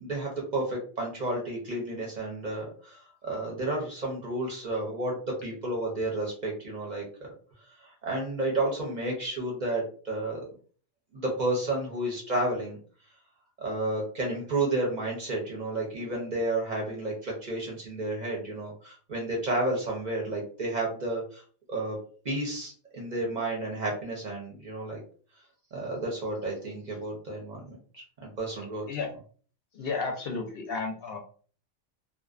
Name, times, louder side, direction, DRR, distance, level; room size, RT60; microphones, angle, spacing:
voice 1, 0.0-7.0 7.8-10.4 11.1-12.8 13.6-21.4 21.7-22.0 22.2-25.0 25.7-28.9, right 2 dB, 45° right, -2 dB, 0.7 m, -31 dB
voice 2, 29.7-31.2, left 4 dB, 65° left, 1 dB, 0.7 m, -32 dB
2.5 x 2.1 x 2.4 m, 0.43 s
omnidirectional pair, 1.2 m